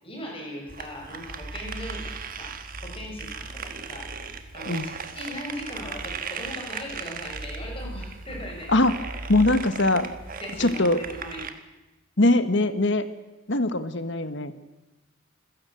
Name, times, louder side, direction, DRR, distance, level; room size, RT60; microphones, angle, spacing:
voice 1, 0.0-2.6 2.8-8.7 10.4-11.4, left 1 dB, 25° left, 0 dB, 7.4 m, -39 dB
sound 1, 0.7-11.5, right 4 dB, 40° right, 1.5 m, -37 dB
voice 2, 9.3-10.1 10.6-11.0 12.2-13.1 13.5-14.5, left 2 dB, 55° left, 11 dB, 1.5 m, -22 dB
26.5 x 16.5 x 7.9 m, 1.1 s
head